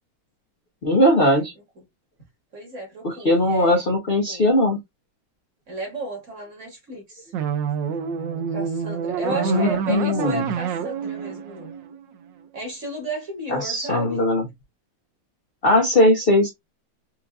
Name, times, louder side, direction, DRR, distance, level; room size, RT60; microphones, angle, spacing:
voice 1, 0.8-1.5 3.0-4.8 9.4-10.4 13.5-14.4 15.6-16.5, left 1 dB, 55° left, 0.6 m, -19 dB
voice 2, 2.5-3.8 4.3-4.4 5.7-7.3 8.5-11.8 12.5-14.2, right 1 dB, 40° right, 1.7 m, -33 dB
sound 1, 7.3-12.5, right 7 dB, 70° right, 1.2 m, -28 dB
4.5 x 2.6 x 2.3 m
omnidirectional pair, 2.3 m